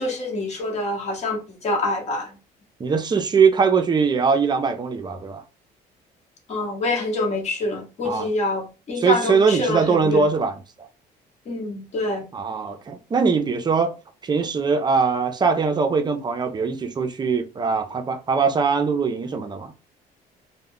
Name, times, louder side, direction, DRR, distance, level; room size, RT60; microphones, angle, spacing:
voice 1, 0.0-2.3 6.5-10.3 11.5-12.3, left 2 dB, 40° left, 1.0 m, -26 dB
voice 2, 2.8-5.4 8.0-8.3 9.0-10.9 12.3-14.0 14.2-19.7, right 5 dB, 25° right, 0.5 m, -21 dB
2.2 x 2.1 x 3.5 m
cardioid pair, 110°, 17 cm